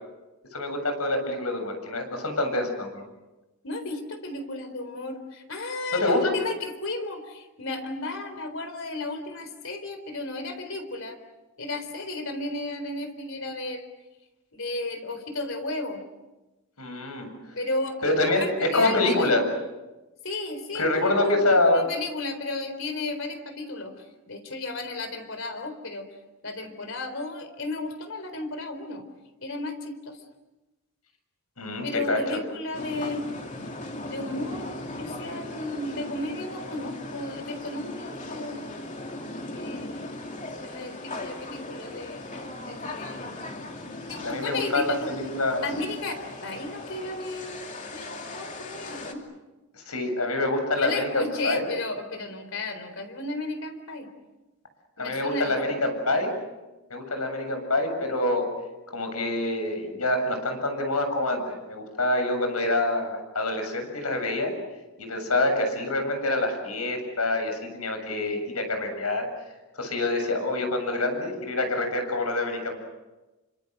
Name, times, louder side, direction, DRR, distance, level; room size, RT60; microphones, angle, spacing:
voice 1, 0.5-3.0 5.9-6.3 16.8-17.3 18.0-19.4 20.7-21.8 31.6-32.2 44.2-45.7 49.7-51.7 55.0-56.3 56.9-58.5 58.9-64.5 65.0-69.3 69.8-72.8, left 2 dB, 85° left, 6 dB, 7.4 m, -26 dB
voice 2, 3.6-11.2 11.6-13.9 14.5-16.0 17.5-18.0 18.3-19.3 20.2-26.1 26.4-29.0 29.4-30.2 31.8-33.3 34.0-38.6 39.5-39.9 40.5-42.2 42.7-43.2 44.1-45.1 45.6-49.2 50.8-54.1 55.0-55.6, left 2 dB, 60° left, 8 dB, 4.0 m, -34 dB
sound 1, 32.7-49.1, left 2 dB, 35° left, 2.9 m, -38 dB
29.5 x 25.5 x 6.7 m, 1.1 s
head